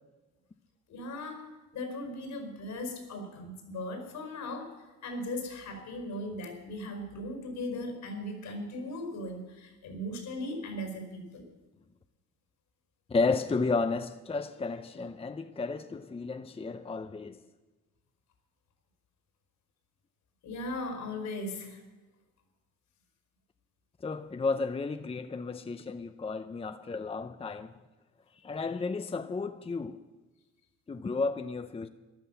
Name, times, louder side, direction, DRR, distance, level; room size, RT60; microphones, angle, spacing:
voice 1, 0.9-11.5 20.4-21.8, left 1 dB, 80° left, 5.0 m, -38 dB
voice 2, 13.1-17.4 24.0-27.7 28.4-30.0 30.9-31.9, left 4 dB, 20° left, 0.7 m, -32 dB
14.0 x 11.5 x 7.1 m
cardioid pair, 90°, 30 cm